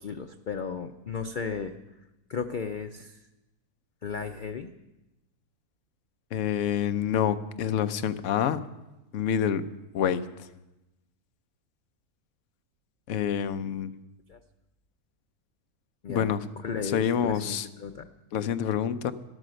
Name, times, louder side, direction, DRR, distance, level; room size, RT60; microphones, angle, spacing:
voice 1, 0.0-1.7 2.3-3.2 4.0-4.7 14.3-14.4 16.0-18.1, left 6 dB, 90° left, 8 dB, 0.4 m, -35 dB
voice 2, 6.3-8.6 9.1-9.6 9.9-10.2 13.1-13.9 16.1-16.4 16.8-17.7 18.3-19.1, left 9 dB, 60° left, 10 dB, 0.9 m, -27 dB
13.0 x 12.5 x 6.4 m, 1.0 s
omnidirectional pair, 1.6 m